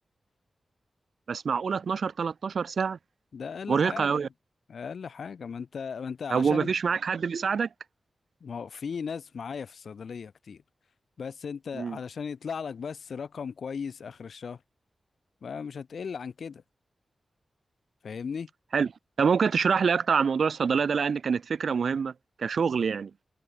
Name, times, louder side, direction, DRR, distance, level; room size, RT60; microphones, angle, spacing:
voice 1, 1.3-3.0 3.7-4.3 6.3-7.7 11.7-12.0 18.7-18.9 19.2-22.1 22.4-23.1, right 6 dB, 65° right, 0.5 m, -26 dB
voice 2, 3.3-4.1 4.7-6.7 8.4-10.6 11.2-14.6 15.4-16.6 18.0-18.5, left 6 dB, 70° left, 1.0 m, -37 dB
wide cardioid pair, 145°, 0 cm